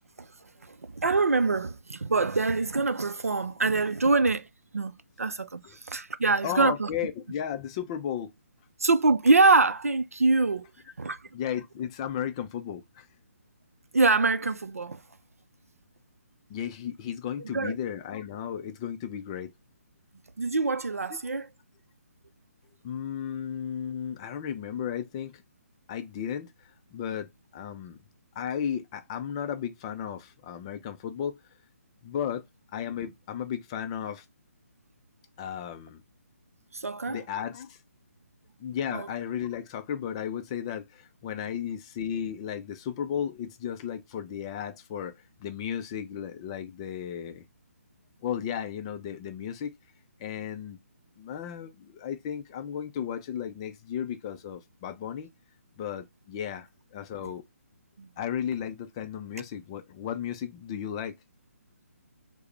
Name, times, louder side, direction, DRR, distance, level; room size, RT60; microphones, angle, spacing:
voice 1, 0.7-4.5 4.7-6.9 8.8-10.7 11.0-11.2 13.9-15.0 17.5-17.7 20.4-21.5 36.7-37.2 38.9-39.1 58.0-58.1, right 3 dB, 80° right, 0.4 m, -24 dB
voice 2, 6.2-8.3 11.3-13.1 16.5-19.5 22.8-25.4 25.9-28.0 28.4-31.4 32.0-32.4 32.7-34.3 35.4-36.0 37.1-37.8 38.6-47.4 48.2-49.7 50.2-50.8 51.2-55.3 55.8-57.4 58.2-61.2, left 9 dB, 25° left, 0.4 m, -34 dB
4.7 x 2.1 x 3.1 m
figure-of-eight pair, 140°, 8 cm